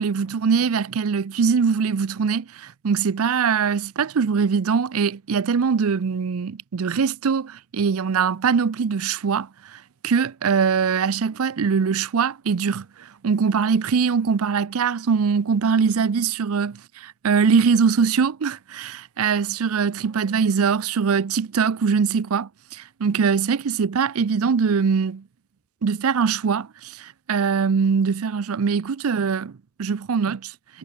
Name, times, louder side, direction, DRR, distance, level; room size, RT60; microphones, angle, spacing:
voice 1, 0.0-25.2 25.8-30.8, right 6 dB, 90° right, 0.5 m, -22 dB
head